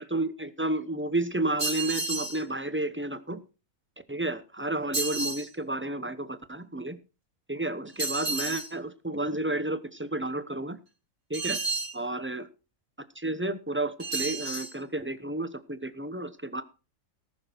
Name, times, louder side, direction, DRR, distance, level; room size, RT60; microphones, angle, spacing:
voice 1, 0.0-3.4 4.1-7.0 7.5-10.8 11.3-11.6 11.9-12.4 13.2-16.6, right 1 dB, 10° right, 12 dB, 0.7 m, -31 dB
sound 1, 1.6-2.4 4.9-5.5 8.0-8.7 11.3-12.0 14.0-14.7, right 3 dB, 50° right, 4.2 m, -31 dB
19.0 x 6.4 x 4.5 m, 0.33 s
omnidirectional pair, 1.4 m